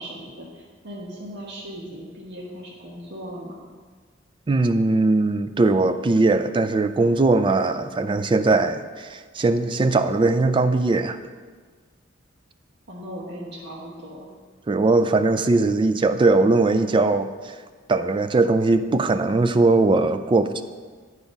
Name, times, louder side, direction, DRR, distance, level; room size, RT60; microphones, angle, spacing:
voice 1, 0.0-3.7 12.9-14.3, equal, 60° right, -4 dB, 1.3 m, -38 dB
voice 2, 4.5-11.2 14.7-17.6 17.9-20.6, right 3 dB, 25° right, 10 dB, 0.4 m, -20 dB
9.0 x 4.8 x 5.3 m, 1.5 s
head